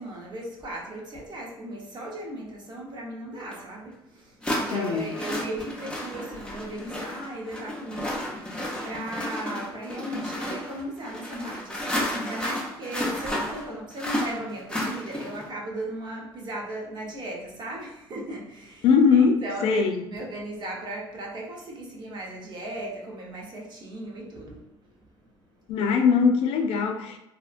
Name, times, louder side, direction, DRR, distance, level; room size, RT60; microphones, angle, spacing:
voice 1, 0.0-18.9 19.1-24.6 24.9-25.1, right 1 dB, 50° right, -2 dB, 0.8 m, -37 dB
sound 1, 3.5-3.6 4.4-15.5, left 1 dB, 10° left, 0.7 m, -32 dB
voice 2, 4.7-5.1 18.8-20.0 25.7-27.2, left 5 dB, 75° left, 5 dB, 0.4 m, -21 dB
2.7 x 2.1 x 2.4 m, 0.86 s
supercardioid pair, 75°, 10 cm